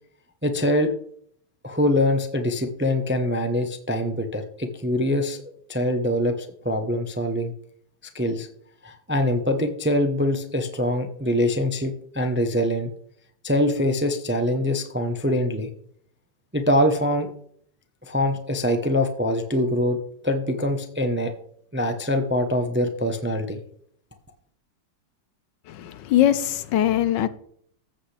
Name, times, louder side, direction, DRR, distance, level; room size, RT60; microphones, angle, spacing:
voice 1, 0.4-0.9 1.6-5.4 5.7-6.3 6.6-7.5 8.1-8.5 8.8-12.9 13.4-15.7 16.5-17.3 18.0-20.0 20.2-21.3 21.7-23.6, left 1 dB, 10° right, 0.5 m, -23 dB
voice 2, 25.7-27.3, left 11 dB, 80° left, 1.4 m, -21 dB
14.5 x 8.1 x 3.4 m
omnidirectional pair, 1.9 m